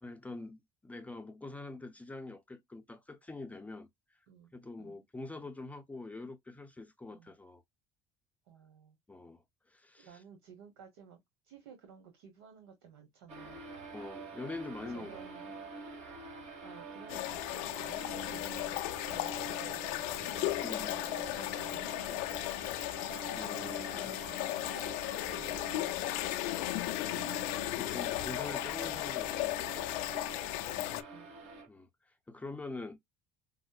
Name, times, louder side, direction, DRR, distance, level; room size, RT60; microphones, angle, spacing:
voice 1, 0.0-4.2 4.5-7.6 9.1-10.2 13.9-15.3 20.6-21.0 23.4-24.1 26.9-30.2 31.7-33.0, left 3 dB, 10° left, 0.6 m, -45 dB
voice 2, 8.5-9.0 10.0-11.2 11.4-13.6 14.9-15.6 16.6-20.4 21.1-22.8 23.5-26.3 30.7-31.3, right 7 dB, 85° right, 1.1 m, -55 dB
sound 1, 13.3-31.7, right 3 dB, 55° right, 2.0 m, -46 dB
sound 2, 17.1-31.0, left 18 dB, 75° left, 0.4 m, -36 dB
5.2 x 2.0 x 2.4 m
supercardioid pair, 90°, 13 cm